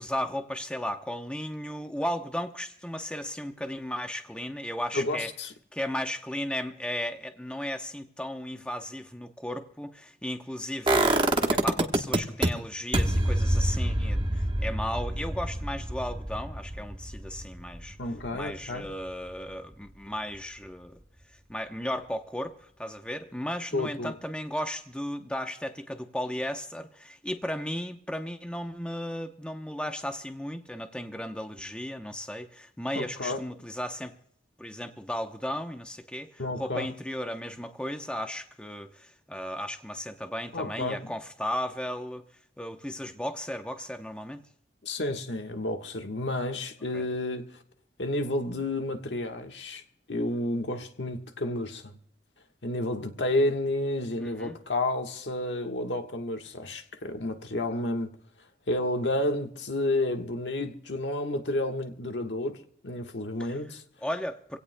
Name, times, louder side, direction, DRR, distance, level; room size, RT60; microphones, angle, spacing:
voice 1, 0.0-5.3 5.7-18.0 18.3-21.0 21.5-34.2 34.6-42.2 42.6-44.4 46.9-47.0 54.2-54.6 64.0-64.6, left 1 dB, 5° left, 0.7 m, -35 dB
voice 2, 4.9-5.5 18.0-18.9 23.7-24.2 32.9-33.4 36.4-36.9 40.5-41.1 44.8-47.6 48.0-49.8 50.1-52.0 52.6-58.1 58.7-63.8, left 1 dB, 90° left, 1.4 m, -31 dB
sound 1, 10.9-12.5 12.9-18.8 19.1-19.2, right 1 dB, 25° right, 1.1 m, -26 dB
27.0 x 17.0 x 2.2 m
head